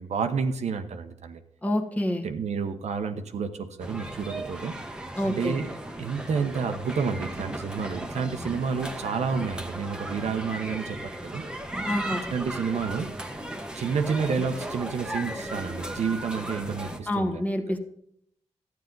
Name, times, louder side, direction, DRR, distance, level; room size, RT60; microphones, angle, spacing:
voice 1, 0.0-1.4 2.2-4.8 5.2-5.7 6.0-11.4 12.3-13.1 13.7-17.4, right 5 dB, 75° right, 7 dB, 0.9 m, -30 dB
voice 2, 1.6-2.2 5.2-5.5 11.8-12.2 17.1-17.8, left 1 dB, 15° left, 4 dB, 1.3 m, -27 dB
sound 1, 3.8-17.0, right 1 dB, 5° right, 1.1 m, -36 dB
12.0 x 9.3 x 3.9 m, 0.70 s
cardioid pair, 85°, 12 cm